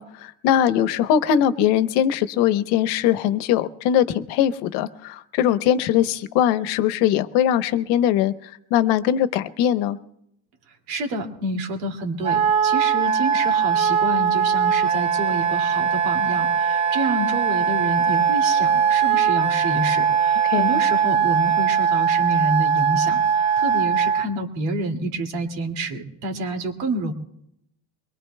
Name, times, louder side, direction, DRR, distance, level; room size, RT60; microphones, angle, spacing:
voice 1, 0.0-10.0 20.5-20.7, left 10 dB, 90° left, 11 dB, 1.0 m, -21 dB
voice 2, 10.9-27.1, right 2 dB, 90° right, 4 dB, 2.5 m, -28 dB
Wind instrument woodwind instrument, 12.2-24.3, right 7 dB, 15° right, 0.5 m, -20 dB
24.0 x 22.0 x 2.2 m, 0.77 s
cardioid pair, 160°, 39 cm